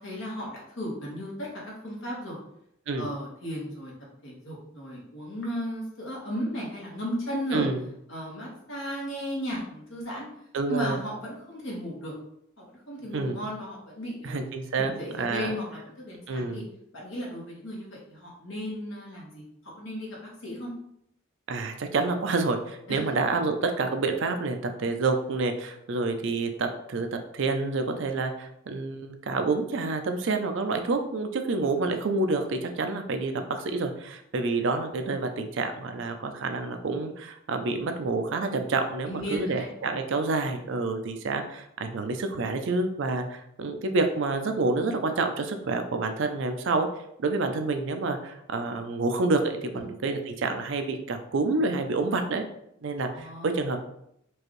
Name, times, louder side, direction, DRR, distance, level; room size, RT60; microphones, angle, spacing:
voice 1, 0.0-2.4 2.9-3.9 4.2-7.7 8.1-10.3 10.7-12.1 12.6-14.4 14.8-16.6 16.9-19.4 19.8-20.7 22.9-23.1 39.1-40.0 49.7-49.9 53.1-53.6, equal, 65° left, -3 dB, 1.4 m, -35 dB
voice 2, 7.5-7.8 10.5-11.0 13.1-13.4 14.2-15.5 16.3-16.7 21.5-46.9 47.2-52.4 52.8-53.8, right 3 dB, 60° right, 6 dB, 0.4 m, -28 dB
4.6 x 2.6 x 3.1 m, 0.76 s
head